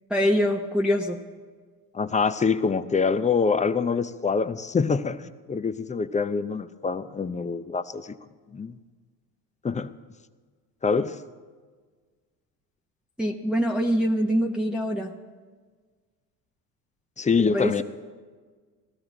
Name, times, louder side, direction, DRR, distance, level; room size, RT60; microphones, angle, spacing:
voice 1, 0.1-1.2 13.2-15.1 17.5-17.8, equal, ahead, -1 dB, 0.9 m, -24 dB
voice 2, 1.9-8.2 8.5-8.7 9.6-9.9 10.8-11.2 17.2-17.8, left 5 dB, 15° left, 12 dB, 0.5 m, -25 dB
17.0 x 13.0 x 4.0 m, 1.5 s
hypercardioid pair, 70°, 46 cm